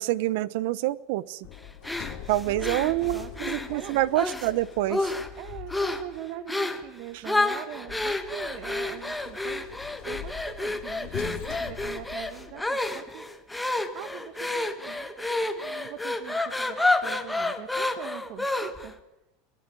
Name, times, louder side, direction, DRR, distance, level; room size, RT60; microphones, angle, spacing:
voice 1, 0.0-1.5 2.3-5.1, right 16 dB, 70° right, 19 dB, 0.9 m, -27 dB
Sliding door, 1.4-6.3 7.9-12.8, left 11 dB, 55° left, 2.5 m, -42 dB
sound 1, 1.8-4.5 4.9-5.4 5.7-6.1 6.5-6.8 7.2-18.9, left 2 dB, 5° left, 1.4 m, -30 dB
voice 2, 2.4-3.3 3.7-4.1 5.4-9.6 10.0-13.2 13.5-18.9, right 12 dB, 50° right, 9 dB, 1.6 m, -42 dB
23.0 x 16.5 x 9.2 m, 0.97 s
supercardioid pair, 150°, 0 cm